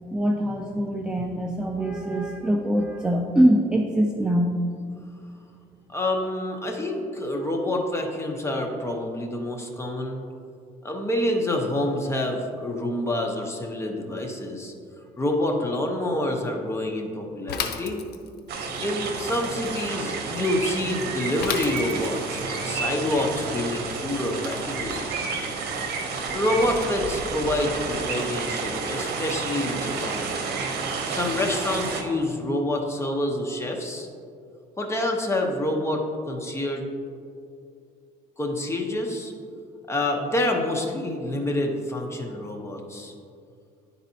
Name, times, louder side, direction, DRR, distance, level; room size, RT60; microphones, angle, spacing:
voice 1, 0.1-4.5, right 1 dB, 5° right, 3 dB, 0.4 m, -23 dB
voice 2, 5.9-10.2 10.8-14.7 15.2-18.0 18.8-25.3 26.3-30.4 31.1-34.1 34.8-36.8 38.4-39.3 39.9-43.1, left 1 dB, 15° left, 1 dB, 0.9 m, -27 dB
Bicycle / Mechanisms, 17.5-18.5 21.4-22.3, left 7 dB, 75° left, 0.6 m, -31 dB
sound 1, 18.5-32.0, right 4 dB, 70° right, 0.8 m, -30 dB
10.0 x 4.1 x 2.8 m, 2.3 s
cardioid pair, 110°, 17 cm